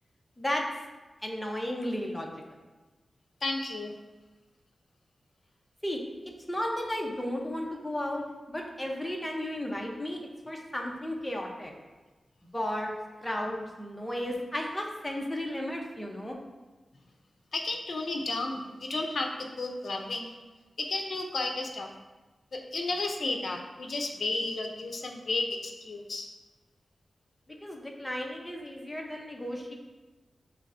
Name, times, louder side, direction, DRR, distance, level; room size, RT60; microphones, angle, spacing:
voice 1, 0.4-0.7 1.2-2.6 5.8-6.0 6.5-10.2 10.5-11.7 12.5-12.9 13.2-16.4 27.6-29.7, left 1 dB, 15° left, 0 dB, 0.8 m, -34 dB
voice 2, 3.4-4.0 17.5-20.4 20.8-21.9 22.5-26.3, left 2 dB, 70° left, 2 dB, 0.5 m, -33 dB
6.2 x 3.2 x 2.6 m, 1.2 s
cardioid pair, 70°, 0 cm